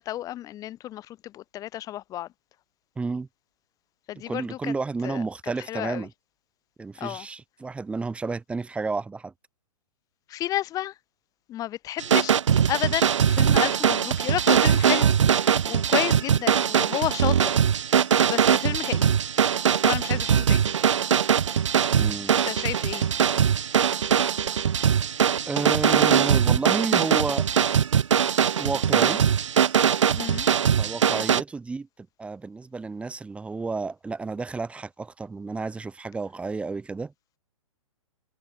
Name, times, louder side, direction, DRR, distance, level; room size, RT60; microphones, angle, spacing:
voice 1, 0.0-2.3 4.1-4.7 5.0-5.2 5.7-6.1 7.0-7.3 10.3-10.9 11.5-12.4 12.7-15.1 15.7-17.6 17.9-19.1 19.8-20.7 22.3-23.1 30.1-30.5, left 13 dB, 20° left, 1.5 m, -31 dB
voice 2, 3.0-3.3 4.3-6.1 6.8-9.3 21.9-22.3 25.5-27.5 28.6-29.2 30.8-31.9 32.2-37.1, right 4 dB, 5° right, 1.4 m, -31 dB
sound 1, 12.0-31.4, right 8 dB, 55° right, 1.7 m, -21 dB
figure-of-eight pair, 115°, 18 cm